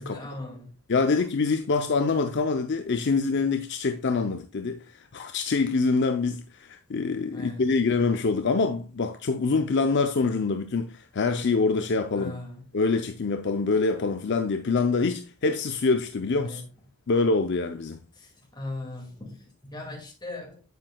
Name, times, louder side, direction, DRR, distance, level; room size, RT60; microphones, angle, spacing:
voice 1, 0.0-0.8 7.3-7.7 12.2-12.6 16.4-16.7 18.1-20.6, left 2 dB, 20° left, 2.0 m, -39 dB
voice 2, 0.9-12.4 12.7-16.6 17.1-18.0, left 4 dB, 50° left, 0.5 m, -25 dB
9.2 x 7.6 x 2.3 m
head